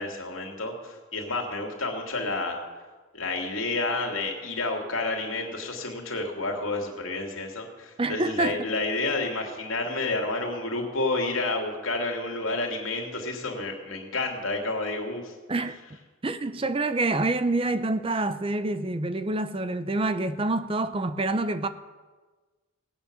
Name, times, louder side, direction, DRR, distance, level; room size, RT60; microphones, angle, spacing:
voice 1, 0.0-2.6 3.1-15.3, left 2 dB, 80° left, 2.9 m, -30 dB
voice 2, 8.0-8.7 15.5-15.8 16.2-21.7, right 2 dB, 25° right, 0.6 m, -27 dB
18.5 x 9.1 x 7.0 m
head